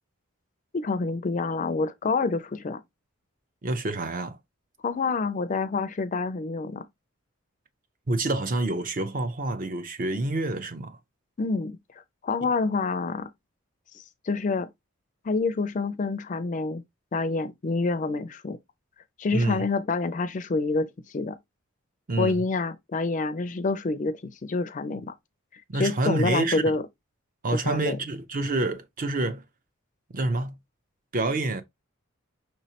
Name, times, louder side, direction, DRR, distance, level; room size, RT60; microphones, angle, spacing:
voice 1, 0.7-2.8 4.8-6.8 11.4-11.8 12.2-13.3 13.9-14.7 15.2-16.8 17.1-18.6 19.2-21.4 22.2-25.1 25.7-26.8 27.5-28.0, left 3 dB, 35° left, 0.4 m, -27 dB
voice 2, 3.6-4.4 8.1-11.0 19.3-19.6 22.1-22.4 25.7-26.6 27.4-29.4 30.1-30.6 31.1-31.6, right 2 dB, 40° right, 0.6 m, -27 dB
5.4 x 3.1 x 2.8 m
head